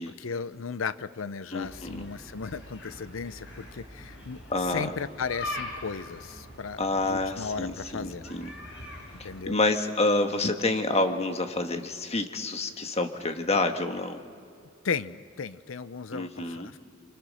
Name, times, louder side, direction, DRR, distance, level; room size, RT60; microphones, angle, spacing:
voice 1, 0.1-8.3 9.2-9.6 14.8-16.8, left 5 dB, 80° left, 15 dB, 0.7 m, -35 dB
voice 2, 1.5-2.0 4.5-4.9 6.8-8.5 9.2-14.2 16.1-16.7, left 2 dB, 30° left, 6 dB, 1.4 m, -28 dB
sound 1, 1.6-9.4, left 1 dB, 65° left, 7.8 m, -42 dB
29.0 x 25.5 x 6.4 m, 2.3 s
head